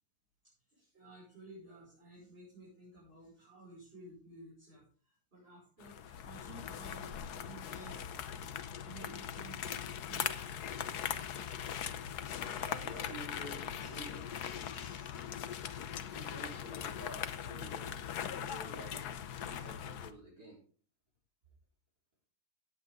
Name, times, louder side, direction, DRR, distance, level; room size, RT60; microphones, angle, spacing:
voice 1, 0.7-8.1 8.5-13.1 13.7-13.9 14.3-16.6, right 2 dB, 35° right, -7 dB, 6.1 m, -55 dB
sound 1, 5.8-20.1, left 9 dB, 90° left, 1.4 m, -40 dB
voice 2, 12.6-14.2 16.1-19.0 19.3-20.6, right 1 dB, 80° right, -3 dB, 4.6 m, -50 dB
17.0 x 7.6 x 3.6 m, 0.43 s
omnidirectional pair, 1.7 m